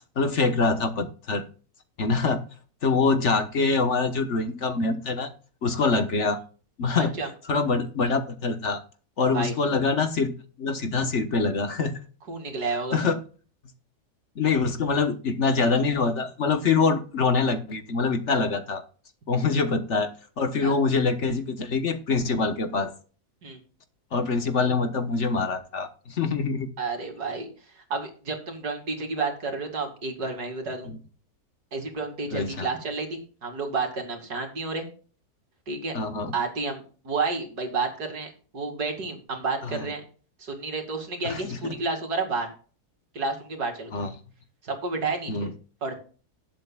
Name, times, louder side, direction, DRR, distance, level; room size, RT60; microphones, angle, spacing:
voice 1, 0.2-1.4 2.0-2.4 2.8-5.3 5.6-6.4 6.8-7.1 7.5-8.8 9.2-10.3 10.6-12.0 12.9-13.2 14.4-18.8 19.3-20.1 20.4-22.9 24.1-26.7 32.3-32.7 35.9-36.3 39.6-39.9 41.2-41.7 43.9-44.1 45.3-45.5, left 4 dB, 50° left, 8 dB, 1.4 m, -24 dB
voice 2, 7.0-7.3 9.3-9.5 12.3-13.0 20.6-20.7 23.4-23.6 26.8-27.5 27.9-30.9 31.7-34.9 35.7-35.9 36.3-40.0 40.4-42.5 43.1-44.0 44.6-45.5 45.8-45.9, right 4 dB, 80° right, 4 dB, 2.9 m, -30 dB
19.0 x 7.7 x 2.3 m, 0.38 s
omnidirectional pair, 1.7 m